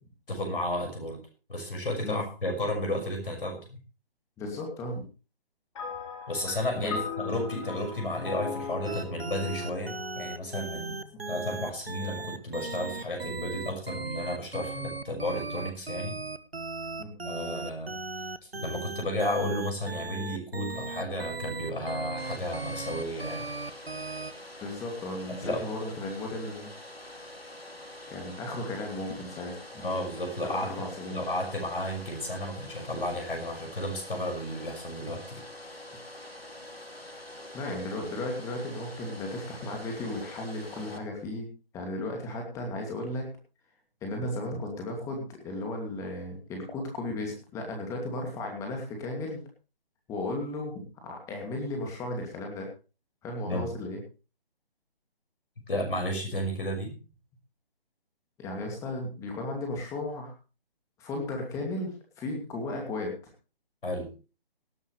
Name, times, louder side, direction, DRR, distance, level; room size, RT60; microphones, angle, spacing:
voice 1, 0.3-1.2 1.5-3.8 6.3-16.2 17.2-17.9 18.5-23.5 25.4-25.6 29.8-35.4 53.5-53.7 55.7-57.0 63.8-64.1, left 1 dB, 65° left, 3 dB, 5.8 m, -33 dB
voice 2, 4.4-5.0 6.8-7.0 17.0-17.1 24.6-26.7 28.1-29.9 30.4-31.2 37.5-41.5 41.7-43.3 44.0-49.4 50.1-52.7 53.2-54.0 58.4-60.3 61.0-63.1, left 2 dB, 10° left, 1 dB, 2.5 m, -35 dB
sound 1, 5.7-11.3, left 6 dB, 30° left, 3.1 m, -39 dB
sound 2, 8.8-24.3, right 3 dB, 85° right, 1.3 m, -37 dB
Domestic sounds home sounds, 22.2-41.0, left 1 dB, 90° left, 2.9 m, -45 dB
18.0 x 11.0 x 3.3 m, 0.33 s
figure-of-eight pair, 150°, 29 cm